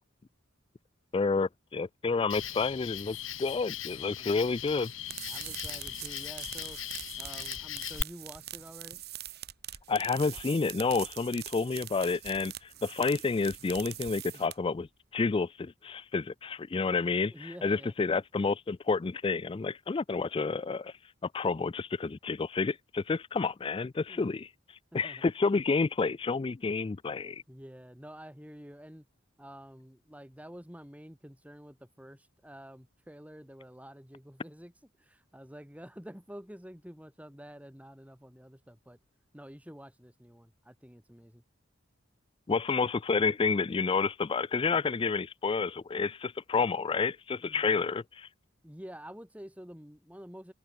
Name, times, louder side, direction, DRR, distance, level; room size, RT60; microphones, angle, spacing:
voice 1, 1.1-4.9 9.9-12.5 12.8-14.9 15.1-20.9 21.3-24.5 24.9-27.4 42.5-48.0, left 4 dB, 25° left, 0.3 m, -29 dB
Cricket, 2.3-8.0, left 9 dB, 90° left, 3.2 m, -39 dB
sound 1, 4.8-14.8, right 12 dB, 55° right, 4.7 m, -43 dB
voice 2, 5.2-6.8 7.2-9.0 14.0-14.4 17.3-17.9 24.1-24.2 24.9-25.2 27.5-29.1 29.4-34.7 35.0-39.0 39.3-41.4 47.4-47.9 48.6-50.5, equal, 5° right, 4.6 m, -49 dB
head